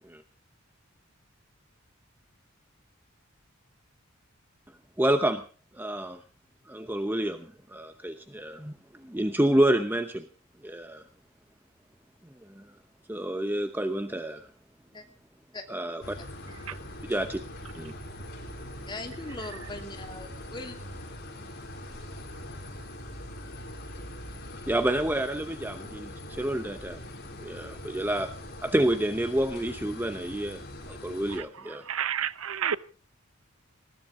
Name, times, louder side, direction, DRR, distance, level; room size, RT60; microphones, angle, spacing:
voice 1, 5.0-5.4 5.7-6.2 6.7-10.2 10.6-11.0 12.6-12.7 13.1-14.5 15.7-16.2 17.1-17.4 17.8-17.9 24.7-27.0 27.4-28.3 28.6-30.6 30.9-31.9, right 1 dB, 10° right, 8 dB, 0.8 m, -28 dB
sound 1, 16.0-31.4, left 1 dB, 50° left, 4.0 m, -42 dB
voice 2, 18.9-20.8, left 2 dB, 20° left, 3 dB, 2.8 m, -40 dB
voice 3, 31.9-32.8, right 8 dB, 85° right, 17 dB, 0.8 m, -29 dB
20.0 x 17.5 x 3.8 m, 0.37 s
head